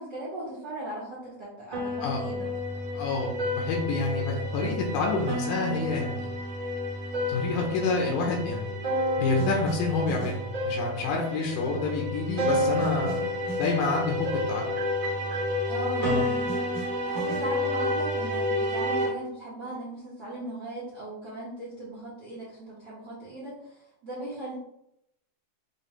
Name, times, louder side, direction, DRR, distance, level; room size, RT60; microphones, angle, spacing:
voice 1, 0.0-2.5 15.7-16.6 17.1-24.5, right 1 dB, 80° right, -9 dB, 1.0 m, -38 dB
sound 1, 1.7-19.1, left 1 dB, 50° right, 1.5 m, -30 dB
voice 2, 2.9-6.3 7.3-8.7 9.2-13.3 13.6-14.7 16.0-16.2, left 3 dB, 75° left, -1 dB, 1.9 m, -28 dB
7.0 x 2.4 x 3.2 m, 0.79 s
omnidirectional pair, 4.2 m